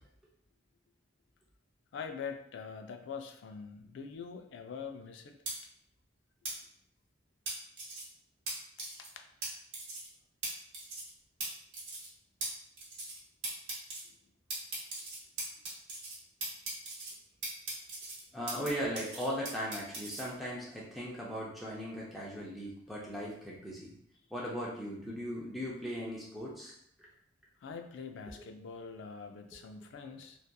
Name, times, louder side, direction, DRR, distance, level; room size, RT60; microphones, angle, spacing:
voice 1, 1.9-5.3 9.0-9.2 27.6-30.4, left 6 dB, 75° left, 5 dB, 0.3 m, -44 dB
sound 1, 5.5-5.6 6.4-6.5 7.5-8.0 8.5-8.6 8.8-9.1 9.4-9.5 9.7-10.1 10.4-10.5 10.7-11.1 11.4-11.5 11.7-12.1 12.4-12.5 12.8-13.2 13.4-14.0 14.5-16.2 16.4-17.1 17.4-18.7 19.0-20.2, right 3 dB, 60° right, 0.9 m, -39 dB
voice 2, 18.3-23.9 24.3-26.7, equal, ahead, -6 dB, 0.4 m, -38 dB
2.7 x 2.3 x 2.2 m, 0.69 s
head